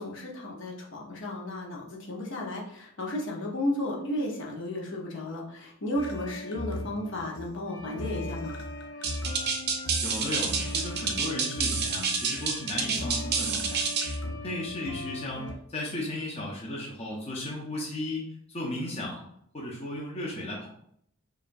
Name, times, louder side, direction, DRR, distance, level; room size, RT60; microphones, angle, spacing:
voice 1, 0.0-8.6, left 1 dB, 60° left, -2 dB, 0.9 m, -33 dB
sound 1, 6.0-15.5, left 1 dB, 90° left, 0.6 m, -38 dB
sound 2, 9.0-14.2, right 5 dB, 50° right, 0.6 m, -29 dB
voice 2, 10.0-13.8 14.2-18.2 18.5-19.2 19.5-20.7, left 1 dB, 30° left, -3 dB, 0.7 m, -35 dB
4.9 x 2.4 x 2.6 m, 0.69 s
head